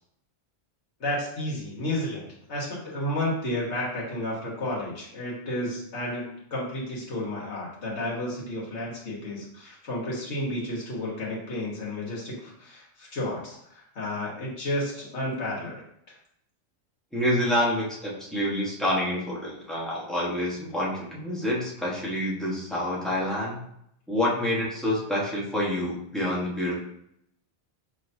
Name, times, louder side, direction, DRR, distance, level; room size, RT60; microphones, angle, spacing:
voice 1, 1.0-6.2 6.5-15.8 16.1-16.2, left 1 dB, 85° left, -5 dB, 1.7 m, -32 dB
voice 2, 17.1-23.6 24.1-26.8, left 1 dB, ahead, -6 dB, 1.1 m, -27 dB
5.5 x 3.1 x 2.7 m, 0.73 s
omnidirectional pair, 1.1 m